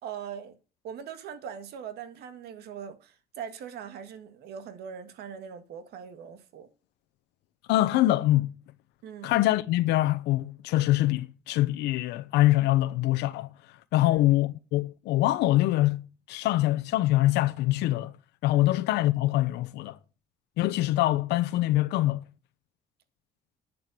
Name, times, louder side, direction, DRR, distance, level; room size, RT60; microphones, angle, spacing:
voice 1, 0.0-0.6 0.8-6.7 9.0-9.3 14.0-14.2 18.5-18.8, right 8 dB, 75° right, 1.8 m, -41 dB
voice 2, 7.7-8.5 9.2-13.5 13.9-18.1 18.4-20.0 20.6-22.2, left 16 dB, 85° left, 0.9 m, -24 dB
11.0 x 7.8 x 6.9 m
cardioid pair, 110°, 17 cm